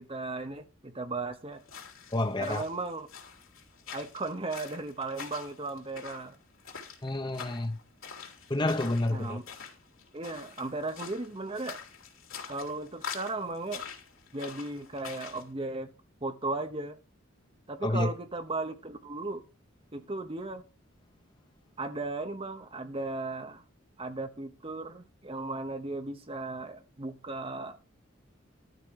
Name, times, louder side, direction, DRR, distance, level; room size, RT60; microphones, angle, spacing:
voice 1, 0.0-1.6 2.4-3.1 3.9-6.4 9.1-9.4 10.1-11.8 12.5-13.8 14.3-15.9 16.2-17.0 17.7-19.4 19.9-20.6 21.8-23.6 24.0-27.8, right 2 dB, 25° right, 1.0 m, -36 dB
sound 1, 1.6-15.5, left 6 dB, 80° left, 3.0 m, -45 dB
voice 2, 2.1-2.6 7.0-7.8 8.5-9.4 17.8-18.1, left 2 dB, 20° left, 0.8 m, -29 dB
12.5 x 4.5 x 8.1 m
head